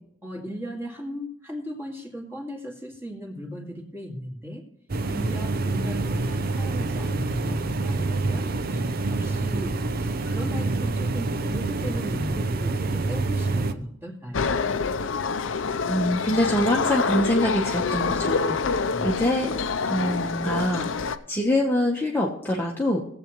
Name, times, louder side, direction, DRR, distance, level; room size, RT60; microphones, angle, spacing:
voice 1, 0.2-4.6 5.1-14.6 18.9-19.1, equal, 10° right, -1 dB, 2.1 m, -37 dB
sound 1, 4.9-13.7, right 3 dB, 50° right, 0.6 m, -27 dB
sound 2, 14.3-21.2, left 4 dB, 75° left, 0.6 m, -26 dB
voice 2, 15.9-19.5 19.9-23.0, left 1 dB, 10° left, -2 dB, 1.1 m, -25 dB
19.0 x 7.8 x 3.1 m, 0.76 s
head